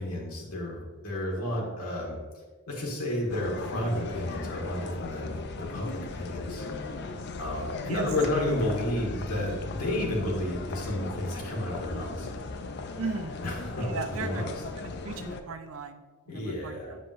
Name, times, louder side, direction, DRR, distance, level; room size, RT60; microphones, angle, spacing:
voice 1, 0.0-2.2 2.7-6.6 7.3-12.3 13.4-14.5 16.3-16.9, left 1 dB, 90° left, -3 dB, 1.6 m, -31 dB
sound 1, 3.3-15.4, left 3 dB, 50° left, 0.4 m, -37 dB
voice 2, 13.0-13.3 13.8-14.5 14.8-17.0, right 4 dB, 70° right, 8 dB, 0.5 m, -37 dB
7.5 x 5.2 x 2.5 m, 1.3 s
head